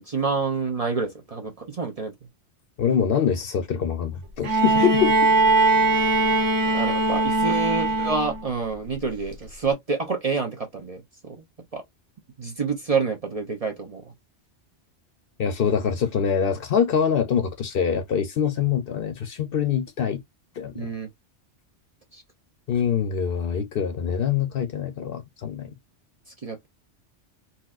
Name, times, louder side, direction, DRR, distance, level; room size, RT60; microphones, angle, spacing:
voice 1, 0.0-2.1 4.7-4.9 6.7-11.4 11.7-11.8 12.4-14.1 20.7-21.1 22.1-22.2 26.4-26.7, right 4 dB, 40° right, 0.6 m, -28 dB
voice 2, 2.8-5.3 15.4-20.2 20.6-20.9 22.7-25.7, left 7 dB, 60° left, 0.7 m, -24 dB
Bowed string instrument, 4.4-8.5 9.7-9.8, right 3 dB, 80° right, 1.2 m, -20 dB
4.1 x 2.3 x 2.4 m
omnidirectional pair, 1.2 m